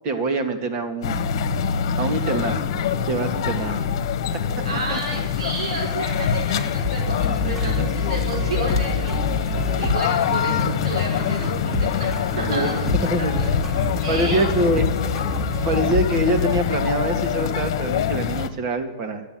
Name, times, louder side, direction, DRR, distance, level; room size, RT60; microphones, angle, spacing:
voice 1, 0.0-1.3 2.0-2.7 3.1-3.9 4.9-5.0 7.8-7.9 12.5-12.7 13.1-13.3 14.1-14.8 15.5-19.2, right 1 dB, 35° right, 6 dB, 2.1 m, -24 dB
sound 1, 1.0-18.5, left 7 dB, 55° left, 1.3 m, -25 dB
voice 2, 4.6-14.6, right 2 dB, 75° right, -1 dB, 5.2 m, -32 dB
sound 2, 6.8-16.6, left 2 dB, 5° right, 1.8 m, -28 dB
13.0 x 8.2 x 9.4 m, 1.3 s
hypercardioid pair, 140°, 3 cm